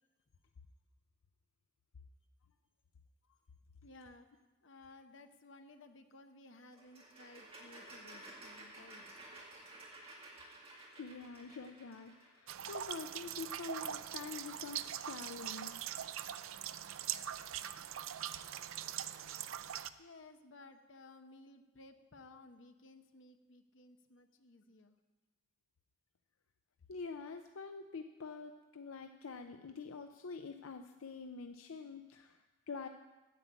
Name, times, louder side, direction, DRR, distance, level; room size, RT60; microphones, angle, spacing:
voice 1, 3.8-9.1 20.0-25.0, left 2 dB, 65° left, 6 dB, 1.0 m, -58 dB
sound 1, 6.7-12.4, right 1 dB, 25° right, 1.9 m, -54 dB
voice 2, 11.0-15.9 26.9-32.9, left 4 dB, 85° left, 7 dB, 0.5 m, -46 dB
sound 2, 12.5-19.9, right 10 dB, 80° right, 0.5 m, -42 dB
9.7 x 8.2 x 8.1 m, 1.2 s
head